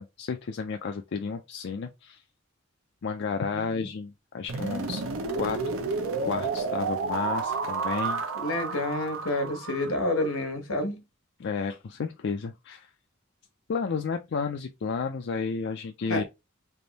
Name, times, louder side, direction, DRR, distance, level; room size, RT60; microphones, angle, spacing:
voice 1, 0.0-2.2 3.0-5.0 5.4-5.6 6.2-8.2 11.4-12.9 13.7-16.2, left 5 dB, 55° left, 0.4 m, -32 dB
voice 2, 3.5-3.9 8.3-11.0 16.1-16.2, left 1 dB, 80° left, 1.2 m, -29 dB
sound 1, 4.5-10.4, right 4 dB, 75° right, 0.8 m, -31 dB
3.4 x 2.6 x 4.0 m
head